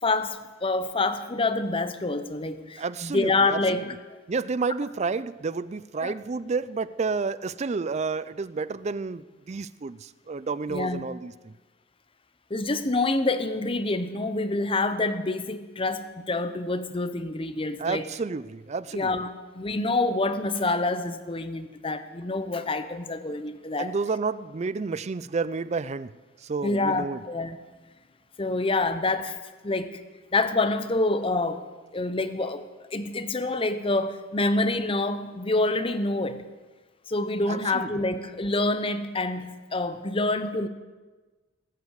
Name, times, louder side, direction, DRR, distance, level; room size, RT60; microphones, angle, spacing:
voice 1, 0.0-3.8 6.0-6.1 10.7-11.0 12.5-18.0 18.9-23.9 26.6-27.6 28.4-29.4 29.6-30.0 30.3-31.6 31.9-36.4 37.1-40.7, left 2 dB, 30° left, 11 dB, 0.8 m, -27 dB
voice 2, 2.8-3.8 4.3-11.5 17.8-19.1 23.8-26.1 26.4-27.2 37.5-37.9, right 4 dB, 35° right, 17 dB, 0.4 m, -30 dB
19.0 x 8.3 x 8.1 m, 1.3 s
head